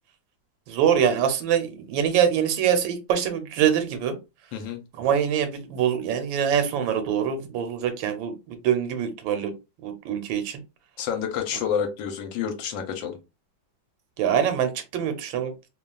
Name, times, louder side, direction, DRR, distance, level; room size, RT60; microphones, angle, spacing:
voice 1, 0.7-4.2 5.0-9.5 9.8-10.6 14.2-15.5, right 8 dB, 90° right, 1.4 m, -24 dB
voice 2, 11.0-13.2, left 8 dB, 85° left, 1.4 m, -29 dB
3.0 x 2.3 x 2.2 m
omnidirectional pair, 2.1 m